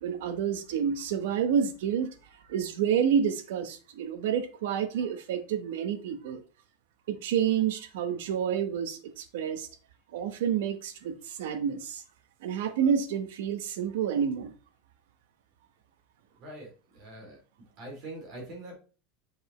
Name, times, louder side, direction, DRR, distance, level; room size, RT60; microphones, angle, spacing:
voice 1, 0.0-2.1 2.5-6.4 7.1-9.7 10.1-12.0 12.4-14.5, right 8 dB, 75° right, 1.0 m, -29 dB
voice 2, 16.4-17.4 17.8-18.7, right 1 dB, 35° right, 2.8 m, -43 dB
7.0 x 5.1 x 3.0 m
supercardioid pair, 175°, 0 cm